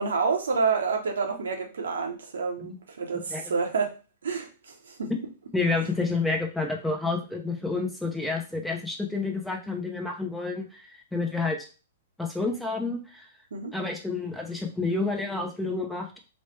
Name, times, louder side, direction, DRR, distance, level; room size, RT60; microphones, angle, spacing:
voice 1, 0.0-3.9 4.2-5.1 13.5-13.7, right 5 dB, 85° right, 3 dB, 0.8 m, -28 dB
voice 2, 5.5-11.7 12.2-13.3 13.7-16.2, left 3 dB, 5° left, 1 dB, 0.6 m, -29 dB
3.0 x 2.1 x 3.2 m, 0.34 s
hypercardioid pair, 130°, 0 cm